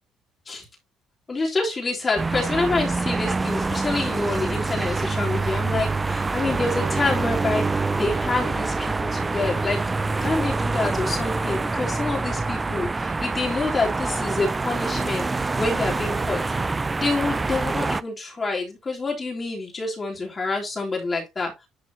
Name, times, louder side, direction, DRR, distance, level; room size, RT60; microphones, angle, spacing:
voice 1, 1.3-9.8 10.2-15.3 15.5-16.4 17.0-21.7, left 3 dB, 20° left, -1 dB, 3.5 m, -27 dB
sound 1, 2.2-18.0, right 3 dB, 15° right, 0.4 m, -26 dB
11.0 x 4.9 x 2.8 m, 0.21 s
cardioid pair, 150°, 0 cm